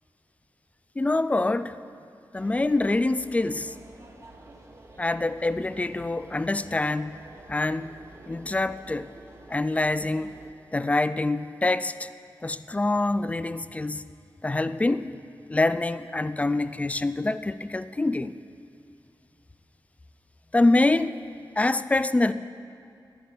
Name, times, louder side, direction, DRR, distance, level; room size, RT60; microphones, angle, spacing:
voice 1, 1.0-1.7 2.3-3.7 5.0-7.2 7.5-8.0 8.3-9.1 9.5-10.4 10.7-12.1 12.4-14.0 14.4-15.1 15.5-18.4 20.5-21.2 21.6-22.3, left 2 dB, 15° left, 0.4 m, -25 dB
sound 1, 2.3-10.5, right 2 dB, 40° right, 1.3 m, -49 dB
14.5 x 10.5 x 5.6 m
wide cardioid pair, 95°, 8 cm